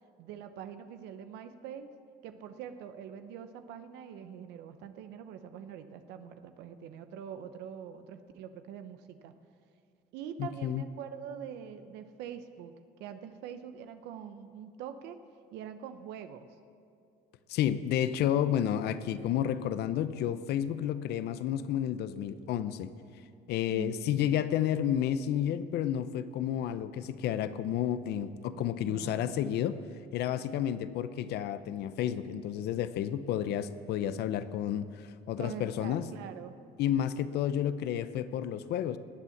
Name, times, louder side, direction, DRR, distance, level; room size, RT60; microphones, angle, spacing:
voice 1, 0.2-1.9 2.2-9.3 10.1-12.7 13.0-15.2 15.5-16.5 23.7-24.1 28.5-29.3 35.4-36.6, right 8 dB, 90° right, 9 dB, 0.8 m, -44 dB
voice 2, 10.4-10.8 17.5-22.9 23.5-29.8 30.1-36.0 36.8-39.0, left 10 dB, 75° left, 13 dB, 0.7 m, -31 dB
20.0 x 8.3 x 7.3 m, 2.5 s
cardioid pair, 110°, 17 cm